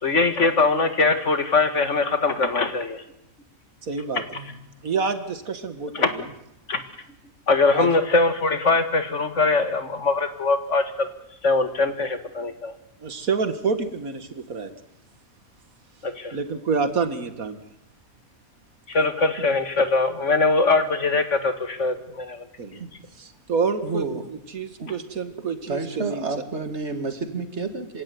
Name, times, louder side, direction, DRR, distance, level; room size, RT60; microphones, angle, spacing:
voice 1, 0.0-3.0 5.9-6.1 6.7-6.8 7.5-11.1 11.4-12.7 16.0-16.4 18.9-22.4, left 3 dB, 55° left, 9 dB, 2.1 m, -22 dB
voice 2, 3.8-4.2 4.8-6.3 7.7-7.9 13.0-14.7 16.3-17.6 22.6-22.8 23.2-26.2, right 5 dB, 80° right, 10 dB, 2.3 m, -28 dB
voice 3, 23.8-24.2 24.8-24.9 25.7-28.0, right 4 dB, 50° right, 8 dB, 2.5 m, -30 dB
26.5 x 17.0 x 9.5 m, 0.81 s
omnidirectional pair, 1.5 m